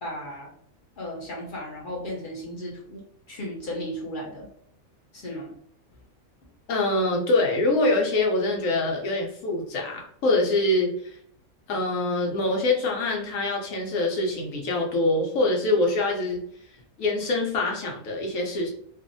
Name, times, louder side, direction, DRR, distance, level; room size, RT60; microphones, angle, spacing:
voice 1, 0.0-0.5 1.0-3.0 3.3-4.5 5.1-5.5, equal, 50° left, -3 dB, 0.6 m, -35 dB
voice 2, 6.7-10.9 11.7-16.4 17.0-18.7, left 2 dB, 70° left, 0 dB, 1.0 m, -24 dB
2.6 x 2.4 x 2.5 m, 0.64 s
omnidirectional pair, 1.5 m